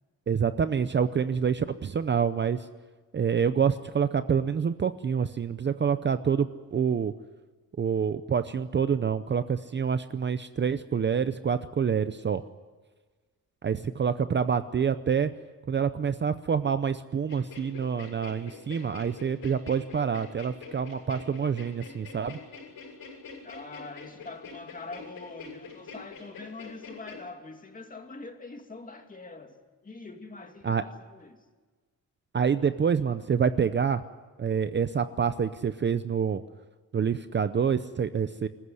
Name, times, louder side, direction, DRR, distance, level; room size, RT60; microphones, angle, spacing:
voice 1, 0.3-2.7 3.1-7.1 7.8-12.4 13.6-15.3 15.7-22.4 30.6-30.8 32.3-34.0 34.4-36.4 36.9-38.5, right 7 dB, 30° right, 0.7 m, -27 dB
sound 1, 17.3-27.2, left 5 dB, 80° left, 7.3 m, -45 dB
voice 2, 23.4-29.6 29.8-31.4, left 3 dB, 25° left, 2.5 m, -44 dB
27.0 x 15.0 x 9.8 m
wide cardioid pair, 160°, 35 cm